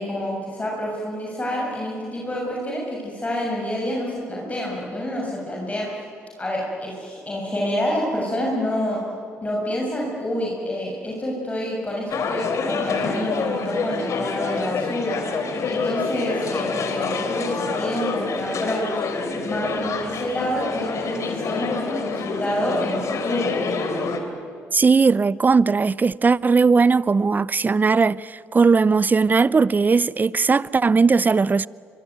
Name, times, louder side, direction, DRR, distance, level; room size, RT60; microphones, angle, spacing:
voice 1, 0.0-5.9 6.4-9.0 9.4-15.2 15.7-18.9 19.4-23.5, equal, 25° left, 6.9 m, -28 dB
sound 1, 12.1-24.2, left 4 dB, 60° left, 3.5 m, -27 dB
voice 2, 24.7-31.7, right 4 dB, 30° right, 0.6 m, -18 dB
24.5 x 23.5 x 9.5 m
supercardioid pair, 55°, 6 cm